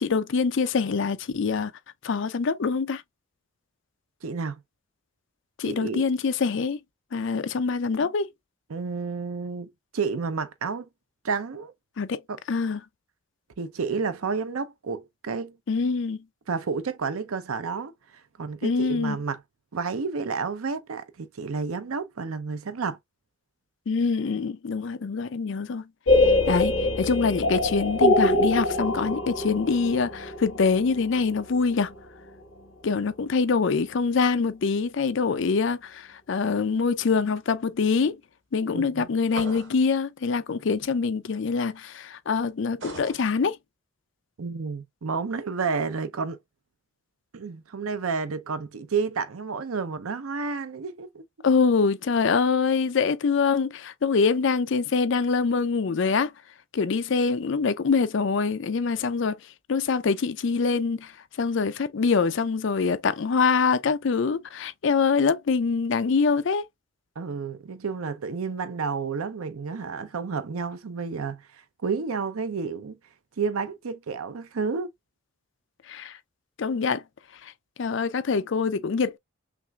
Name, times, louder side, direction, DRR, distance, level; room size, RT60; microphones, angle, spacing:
voice 1, 0.0-1.7 2.0-3.0 5.6-6.8 7.1-8.3 12.0-12.2 12.5-12.8 15.7-16.2 18.6-19.2 23.9-25.9 26.5-31.9 32.8-38.2 38.5-43.6 51.4-56.3 56.7-59.4 59.7-61.1 61.4-66.7 75.9-76.2 76.6-77.0 77.4-77.5 77.8-79.2, left 5 dB, 60° left, 0.4 m, -24 dB
voice 2, 4.2-4.6 5.6-6.0 8.7-10.9 11.2-11.7 12.3-12.4 13.6-15.6 16.5-19.4 19.7-23.0 38.7-39.1 44.4-46.4 47.3-51.2 67.2-71.4 71.8-73.0 73.4-74.9, right 5 dB, 85° right, 0.6 m, -30 dB
sound 1, 26.1-31.8, left 2 dB, 75° left, 1.4 m, -24 dB
sound 2, 39.3-39.8 42.8-43.2, right 2 dB, 60° right, 1.5 m, -38 dB
5.8 x 2.5 x 2.2 m
head